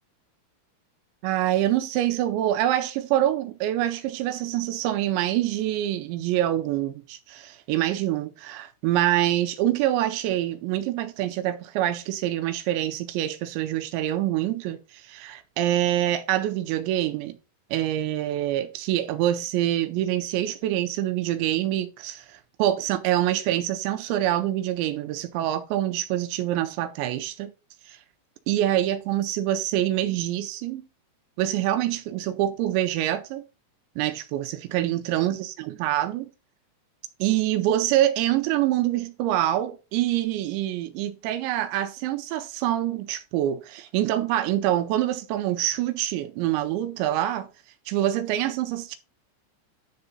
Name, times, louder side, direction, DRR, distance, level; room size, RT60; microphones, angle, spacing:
voice 1, 1.2-17.4 17.7-27.5 27.9-28.0 28.5-30.9 31.4-33.4 34.0-36.3 37.2-47.5 47.9-49.0, right 13 dB, 85° right, 2.7 m, -25 dB
10.5 x 3.9 x 4.0 m
omnidirectional pair, 5.5 m